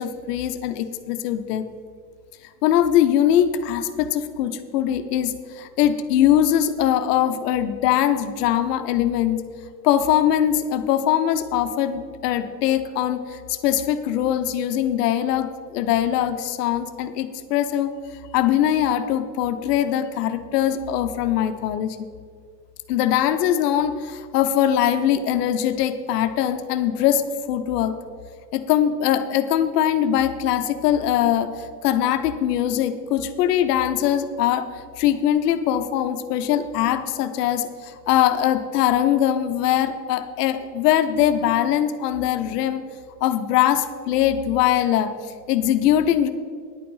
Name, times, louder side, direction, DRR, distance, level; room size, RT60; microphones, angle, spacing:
voice 1, 0.0-1.6 2.6-9.4 9.8-17.9 18.3-22.0 22.9-27.9 28.5-31.5 31.8-34.7 35.0-42.8 43.2-45.1 45.5-46.3, left 10 dB, 75° left, 9 dB, 1.1 m, -21 dB
10.5 x 8.5 x 5.6 m, 2.1 s
supercardioid pair, 110°, 48 cm